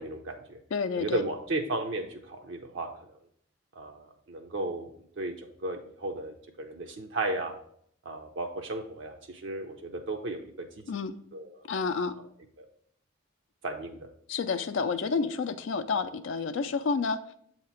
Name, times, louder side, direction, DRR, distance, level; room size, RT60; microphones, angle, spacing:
voice 1, 0.0-0.6 1.0-3.2 3.7-4.9 5.2-7.5 8.0-10.8 11.3-11.6 12.6-12.7 13.6-14.1, right 2 dB, 65° right, 3 dB, 0.6 m, -35 dB
voice 2, 0.7-1.2 10.9-11.1 11.7-12.1 14.3-17.2, left 5 dB, 70° left, 10 dB, 0.4 m, -29 dB
7.3 x 2.9 x 5.6 m, 0.66 s
head